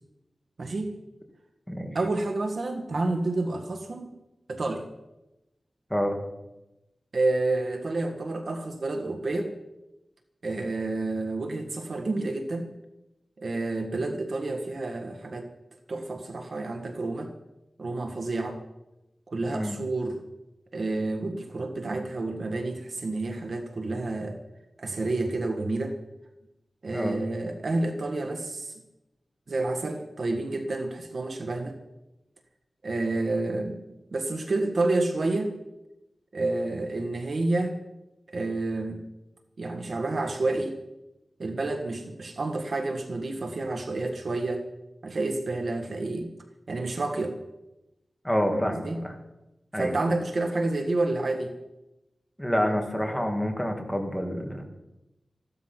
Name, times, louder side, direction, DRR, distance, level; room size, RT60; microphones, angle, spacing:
voice 1, 0.6-1.0 1.9-4.1 4.5-4.9 7.1-9.5 10.4-12.7 13.4-15.5 15.9-17.3 17.8-18.6 19.3-20.2 20.7-24.4 24.8-26.0 26.8-28.7 29.5-31.8 32.8-33.8 34.1-35.6 36.3-37.8 38.3-39.0 39.6-40.8 41.4-44.7 45.0-46.3 46.7-47.4 48.5-49.0 49.8-51.5, right 2 dB, 60° right, 5 dB, 1.7 m, -29 dB
voice 2, 48.2-49.1 49.7-50.0 52.4-54.7, equal, 5° left, 3 dB, 2.5 m, -28 dB
15.0 x 12.5 x 6.0 m, 0.94 s
wide cardioid pair, 95°, 0 cm